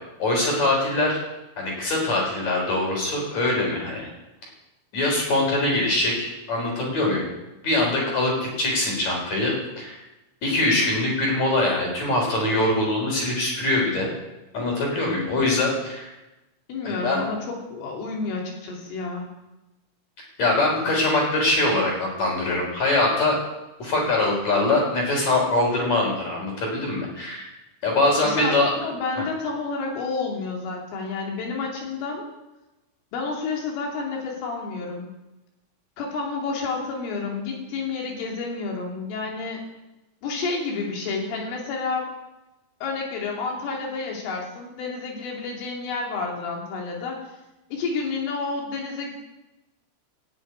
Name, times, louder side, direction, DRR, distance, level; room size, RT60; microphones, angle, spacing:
voice 1, 0.2-1.2 1.6-4.1 4.9-7.2 7.6-10.0 10.4-14.1 14.5-16.1 16.8-17.2 20.4-23.4 23.8-27.5 27.8-28.7 29.2-29.3, left 2 dB, 35° left, -1 dB, 4.7 m, -23 dB
voice 2, 16.7-19.3 28.2-28.6 28.8-32.3 33.1-35.1 36.0-39.6 40.2-42.1 42.8-47.2 47.7-49.1, left 4 dB, 70° left, 0 dB, 5.1 m, -30 dB
15.5 x 7.0 x 9.5 m, 1.0 s
omnidirectional pair, 5.9 m